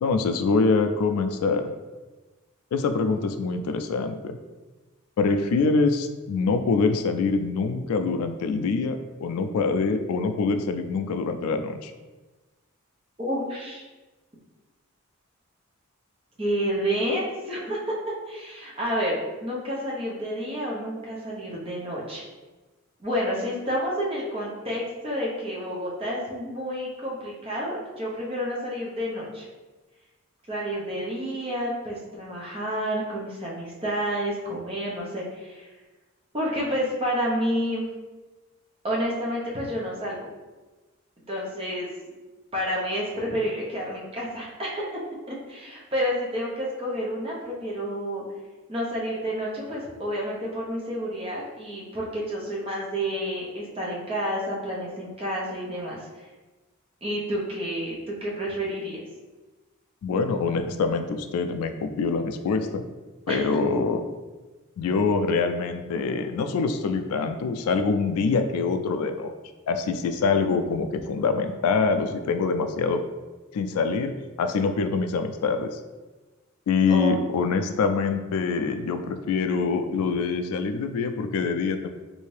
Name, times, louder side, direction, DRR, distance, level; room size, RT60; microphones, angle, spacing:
voice 1, 0.0-1.7 2.7-4.4 5.2-11.9 60.0-62.8 63.3-64.0 64.8-69.4 69.7-73.0 73.5-75.8 76.7-81.9, left 4 dB, 85° left, 8 dB, 0.3 m, -25 dB
voice 2, 13.2-13.8 16.4-17.8 18.3-19.1 19.4-22.2 23.0-29.5 30.5-35.7 36.3-37.9 38.8-40.2 41.3-41.9 42.5-44.8 45.3-48.2 48.7-56.1 57.0-59.0 63.3-63.4 76.9-77.7, equal, 25° right, -4 dB, 0.7 m, -29 dB
3.2 x 2.7 x 3.2 m, 1.2 s
head